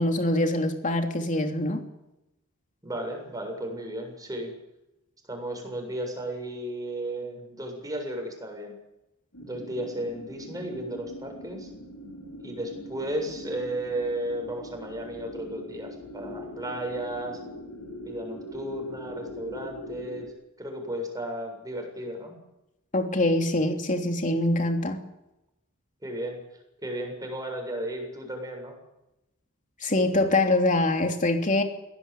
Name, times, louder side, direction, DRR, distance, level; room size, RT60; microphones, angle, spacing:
voice 1, 0.0-1.8 22.9-25.0 29.8-31.6, left 2 dB, 35° left, 4 dB, 3.2 m, -24 dB
voice 2, 2.8-4.5 5.3-8.7 9.4-11.7 12.4-17.4 18.0-20.3 20.6-22.3 26.0-26.4 26.8-28.8, right 1 dB, 15° right, 3 dB, 7.4 m, -34 dB
sound 1, 9.3-20.3, left 1 dB, 70° left, 5.6 m, -42 dB
22.0 x 18.0 x 9.0 m, 0.91 s
head